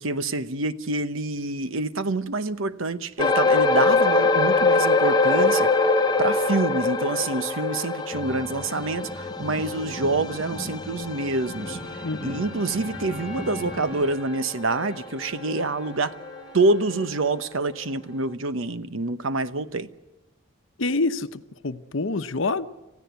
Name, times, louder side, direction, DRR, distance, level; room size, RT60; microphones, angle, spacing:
voice 1, 0.0-5.7 6.2-11.8 12.2-16.1 16.5-19.9, right 2 dB, 80° right, 1.0 m, -26 dB
sound 1, 3.2-15.9 16.2-16.4 17.0-17.1, left 3 dB, 20° left, 0.9 m, -24 dB
sound 2, 8.1-14.1, equal, 5° right, 4.9 m, -39 dB
Wind instrument woodwind instrument, 11.4-17.4, equal, 40° right, 6.5 m, -46 dB
voice 2, 12.0-12.4 20.8-22.6, left 3 dB, 70° left, 0.9 m, -27 dB
27.0 x 15.5 x 8.2 m
head